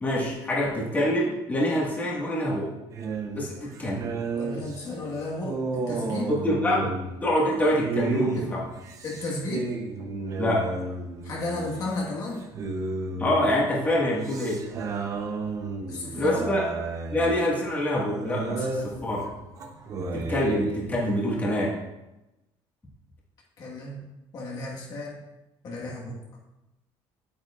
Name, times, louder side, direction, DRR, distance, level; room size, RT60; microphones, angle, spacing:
voice 1, 0.0-2.7 3.4-4.1 6.3-6.9 7.2-8.6 10.4-10.6 13.2-14.6 16.1-16.6 17.1-19.2 20.1-21.7, left 1 dB, 15° left, -5 dB, 1.5 m, -25 dB
sound 1, 2.9-12.1 12.3-20.9, right 3 dB, 35° right, 0.7 m, -33 dB
voice 2, 4.4-6.3 8.3-8.5 9.0-9.7 11.2-12.5 15.9-16.4 18.6-18.7 23.6-24.1 24.3-25.2 25.6-26.2, left 2 dB, 40° left, -3 dB, 1.4 m, -33 dB
9.3 x 8.5 x 2.4 m, 0.98 s
cardioid pair, 175°, 10 cm